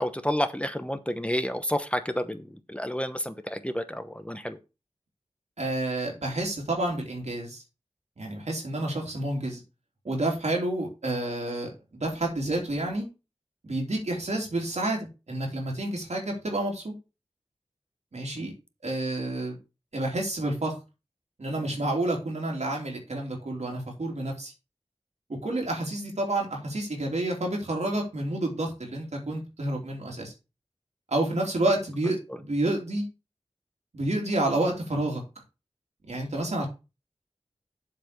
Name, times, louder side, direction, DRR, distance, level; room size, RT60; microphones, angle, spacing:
voice 1, 0.0-4.6 18.3-18.5, equal, 10° left, 9 dB, 1.0 m, -30 dB
voice 2, 5.6-7.6 8.2-9.6 10.0-13.1 13.6-16.9 18.1-18.5 18.8-19.6 19.9-20.8 21.4-24.5 25.4-30.3 31.1-33.0 33.9-35.2 36.1-36.7, right 1 dB, 85° right, 0 dB, 3.1 m, -29 dB
7.6 x 4.3 x 6.8 m, 0.29 s
wide cardioid pair, 40°, 11 cm